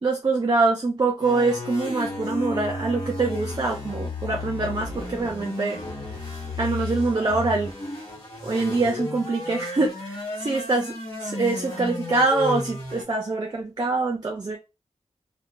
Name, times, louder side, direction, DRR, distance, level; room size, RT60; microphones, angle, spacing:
voice 1, 0.0-5.8 6.6-7.8 8.4-10.9 11.2-14.6, right 3 dB, 40° right, 0.5 m, -24 dB
sound 1, 1.2-13.0, left 2 dB, 40° left, 1.2 m, -33 dB
2.8 x 2.1 x 2.5 m
wide cardioid pair, 105°, 11 cm